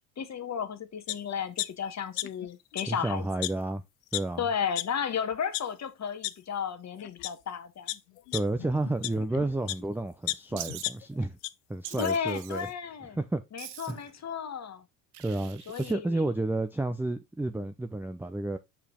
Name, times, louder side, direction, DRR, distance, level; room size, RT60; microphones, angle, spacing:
voice 1, 0.2-3.3 4.4-8.0 12.0-13.2 13.5-14.8 15.7-16.2 17.6-17.7, left 7 dB, 35° left, 1.3 m, -33 dB
sound 1, 1.1-1.2 1.6-2.5 2.7-2.8 3.4-3.5 4.1-4.2 4.8-4.9 5.3-5.6 6.2-6.3 7.0-7.3 7.9-9.8 10.3-11.5 11.9-12.0, left 19 dB, 75° left, 0.6 m, -33 dB
voice 2, 2.9-3.8 4.1-4.4 8.3-11.4 11.7-12.7 13.2-13.4 13.9-14.0 15.2-18.6, right 2 dB, 5° right, 0.6 m, -31 dB
Wild animals, 10.6-10.9 11.8-12.7 13.6-14.1 15.1-15.9, right 12 dB, 60° right, 1.0 m, -43 dB
6.7 x 5.0 x 3.7 m
hypercardioid pair, 80°, 48 cm